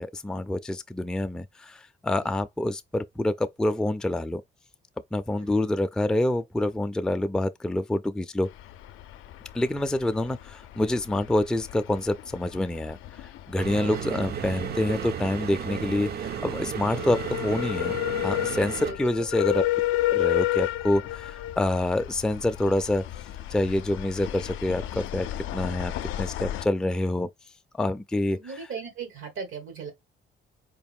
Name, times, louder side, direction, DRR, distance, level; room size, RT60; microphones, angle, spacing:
voice 1, 0.0-4.4 5.1-8.5 9.5-13.0 13.5-18.0 18.2-19.6 20.1-23.0 23.5-27.3 27.7-28.6, left 1 dB, 5° left, 0.4 m, -27 dB
sound 1, 8.4-26.7, left 15 dB, 90° left, 0.4 m, -32 dB
sound 2, 13.6-18.9, right 8 dB, 55° right, 0.5 m, -34 dB
voice 2, 13.6-14.0 14.9-15.1 18.8-19.0 28.3-29.9, right 5 dB, 90° right, 1.7 m, -38 dB
4.6 x 2.2 x 3.5 m
cardioid pair, 90°, 20 cm